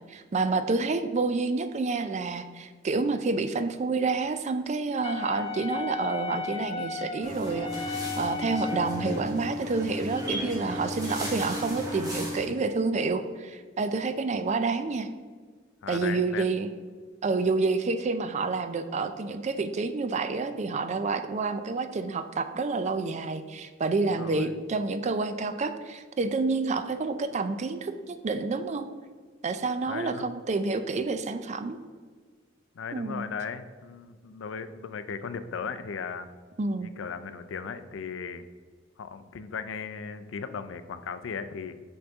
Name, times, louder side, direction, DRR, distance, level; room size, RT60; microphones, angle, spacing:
voice 1, 0.0-15.1 15.9-16.7 17.2-28.9 29.4-31.8 32.9-33.2 36.6-37.0, right 3 dB, 35° right, 10 dB, 0.4 m, -29 dB
Wind instrument woodwind instrument, 5.0-9.2, left 6 dB, 30° left, 0.4 m, -35 dB
sound 1, 7.2-12.4, left 1 dB, 20° right, 1.5 m, -34 dB
voice 2, 15.8-16.5 24.1-24.5 29.9-30.3 32.7-36.3 36.8-38.5 39.0-41.8, left 6 dB, 90° left, 11 dB, 0.4 m, -37 dB
6.2 x 6.2 x 3.5 m, 1.6 s
head